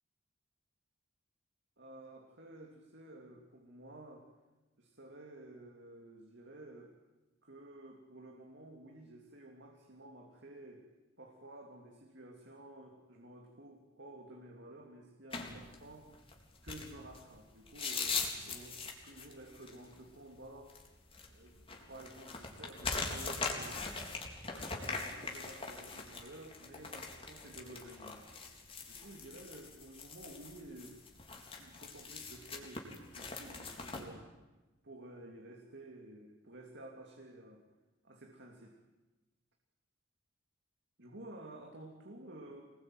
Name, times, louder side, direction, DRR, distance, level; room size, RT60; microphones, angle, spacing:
voice 1, 1.8-4.3 4.8-6.9 7.4-10.9 11.2-16.2 16.6-20.7 21.3-21.6 21.9-23.9 24.4-28.2 28.8-31.0 31.6-34.3 34.8-37.6 38.0-38.8 41.0-42.6, right 1 dB, 60° right, 1 dB, 3.1 m, -52 dB
sound 1, 15.3-34.1, left 4 dB, 30° left, 3.8 m, -42 dB
25.5 x 20.5 x 9.2 m, 1.1 s
head